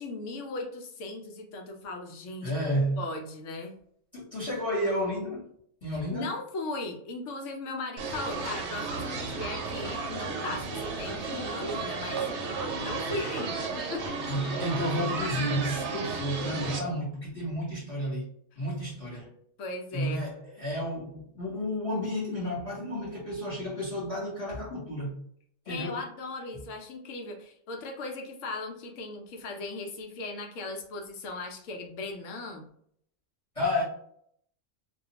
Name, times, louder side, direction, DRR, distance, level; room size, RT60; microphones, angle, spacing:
voice 1, 0.0-2.5 3.0-3.7 5.9-12.3 12.8-14.2 19.6-20.2 25.7-32.7, left 2 dB, 75° left, 0.9 m, -38 dB
voice 2, 2.4-3.0 4.1-5.5 5.8-6.3 14.3-18.3 18.6-19.3 19.9-25.1 25.7-26.0 33.5-33.8, equal, 30° left, 1.1 m, -31 dB
sound 1, 8.0-16.8, right 4 dB, 65° right, 0.9 m, -33 dB
2.4 x 2.2 x 2.8 m
omnidirectional pair, 1.3 m